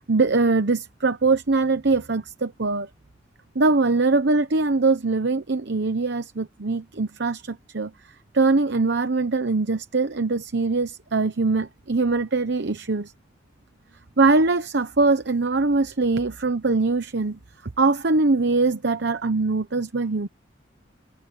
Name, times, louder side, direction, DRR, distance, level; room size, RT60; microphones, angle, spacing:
voice 1, 0.0-2.9 3.5-7.9 8.3-13.1 14.2-17.4 17.8-20.3, right 3 dB, 65° right, 1.0 m, -22 dB
head